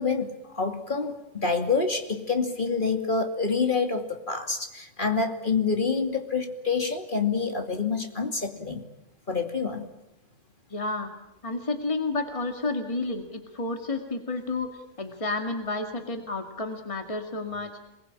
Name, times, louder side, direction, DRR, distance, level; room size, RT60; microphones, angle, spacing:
voice 1, 0.0-8.9 9.3-9.9, left 4 dB, 40° left, 4 dB, 2.7 m, -27 dB
voice 2, 10.7-11.1 11.4-17.7, left 3 dB, 25° left, 4 dB, 2.1 m, -31 dB
27.5 x 21.0 x 8.9 m, 0.91 s
omnidirectional pair, 1.3 m